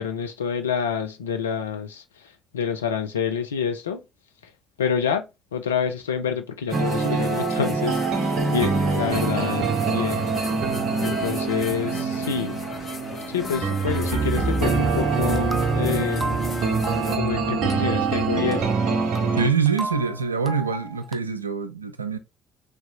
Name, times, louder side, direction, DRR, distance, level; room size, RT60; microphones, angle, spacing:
voice 1, 0.0-2.0 2.5-4.0 4.8-5.2 5.5-8.0 8.5-10.3 11.0-12.6 13.3-16.4 17.1-18.7, left 7 dB, 80° left, 0.4 m, -27 dB
sound 1, 6.7-17.2, left 4 dB, 40° left, 1.1 m, -36 dB
sound 2, 6.7-19.5, right 4 dB, 50° right, 0.7 m, -24 dB
sound 3, 15.1-21.1, right 2 dB, 10° right, 0.5 m, -36 dB
voice 2, 19.4-22.2, right 6 dB, 85° right, 0.3 m, -24 dB
3.3 x 2.8 x 2.8 m
figure-of-eight pair, 50°, 0 cm